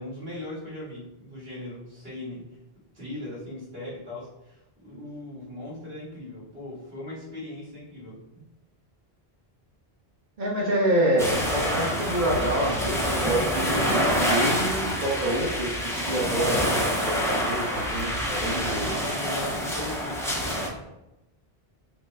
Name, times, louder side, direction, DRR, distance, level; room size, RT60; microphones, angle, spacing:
voice 1, 0.0-2.4 2.9-8.2 18.2-18.3 19.0-20.4, left 1 dB, 70° right, -7 dB, 2.2 m, -39 dB
voice 2, 10.4-18.9, right 1 dB, 45° right, -6 dB, 1.1 m, -27 dB
sound 1, 11.2-20.7, equal, 5° left, 0.6 m, -27 dB
5.0 x 2.1 x 4.8 m, 0.92 s
omnidirectional pair, 1.1 m